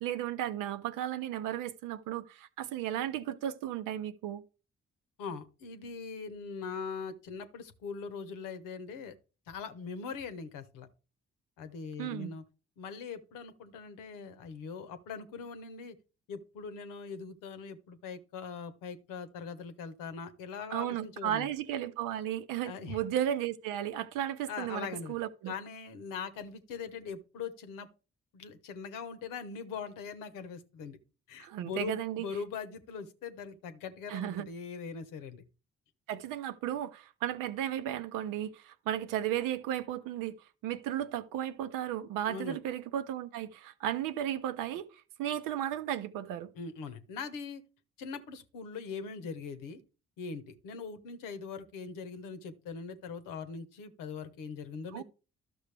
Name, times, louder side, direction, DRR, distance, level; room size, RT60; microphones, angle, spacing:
voice 1, 0.0-4.4 12.0-12.3 20.7-25.5 31.4-32.3 34.1-34.5 36.1-40.3 40.6-44.9 45.2-46.5 54.9-55.0, right 11 dB, 80° right, 0.7 m, -34 dB
voice 2, 5.2-9.1 9.5-10.9 11.6-12.4 12.8-16.0 16.3-21.5 22.6-23.0 24.5-25.1 25.5-27.9 28.3-31.0 31.3-35.4 42.3-42.6 46.5-47.6 48.0-49.8 50.2-55.0, left 5 dB, 80° left, 1.0 m, -41 dB
12.0 x 6.1 x 3.3 m
hypercardioid pair, 40°, 32 cm